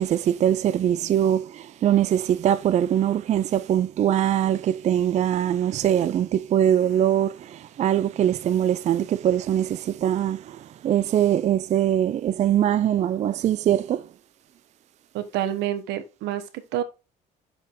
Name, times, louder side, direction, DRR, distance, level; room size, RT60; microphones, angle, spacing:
voice 1, 0.0-14.1, right 10 dB, 45° right, 0.4 m, -22 dB
voice 2, 15.1-16.8, right 11 dB, 85° right, 1.0 m, -28 dB
6.6 x 5.4 x 3.6 m
cardioid pair, 110°, 17 cm